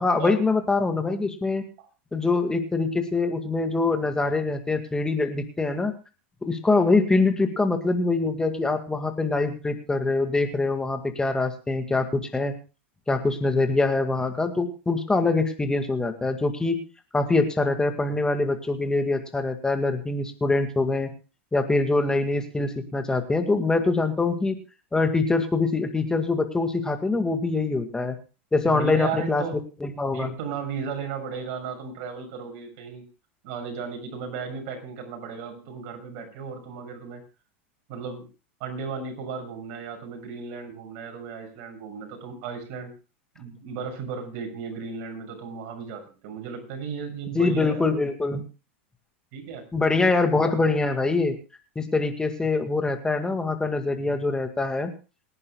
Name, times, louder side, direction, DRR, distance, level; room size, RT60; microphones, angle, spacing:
voice 1, 0.0-1.6 2.1-5.9 6.4-12.5 13.1-16.8 17.1-21.1 21.5-24.6 24.9-28.2 28.5-29.4 29.8-30.3 47.3-48.4 49.7-51.4 51.8-54.9, left 3 dB, 10° left, 6 dB, 2.0 m, -24 dB
voice 2, 28.6-29.6 30.1-33.0 33.4-37.2 37.9-38.2 38.6-42.9 43.3-47.9 49.3-49.6, right 6 dB, 50° right, 5 dB, 6.6 m, -35 dB
28.0 x 11.0 x 2.3 m, 0.33 s
hypercardioid pair, 100°, 7 cm